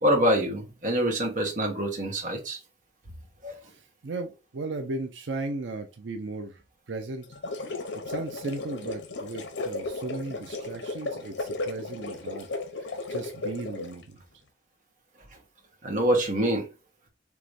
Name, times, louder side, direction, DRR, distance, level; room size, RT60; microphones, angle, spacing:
voice 1, 0.0-2.6 3.4-3.5 15.8-16.7, equal, 45° right, 1.2 m, -25 dB
voice 2, 3.7-6.6 6.9-7.2 8.1-12.5 12.8-14.2, right 3 dB, 85° right, 0.6 m, -36 dB
sound 1, 7.2-14.0, left 3 dB, 80° left, 0.8 m, -35 dB
4.7 x 3.0 x 2.6 m
head